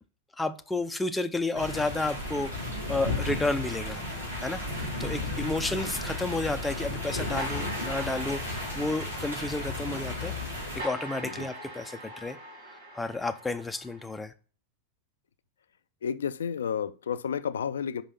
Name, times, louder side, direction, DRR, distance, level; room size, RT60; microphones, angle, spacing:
voice 1, 0.4-2.5 2.9-4.0 4.4-4.6 5.0-8.4 8.7-10.3 10.8-12.4 12.9-14.3, left 2 dB, 5° left, 0.5 m, -31 dB
sound 1, 1.5-10.8, left 2 dB, 90° right, 2.9 m, -34 dB
sound 2, 7.4-14.2, right 1 dB, 70° right, 3.0 m, -43 dB
voice 2, 16.0-18.0, left 7 dB, 65° left, 0.4 m, -32 dB
5.4 x 5.1 x 4.0 m
figure-of-eight pair, 90°, 0 cm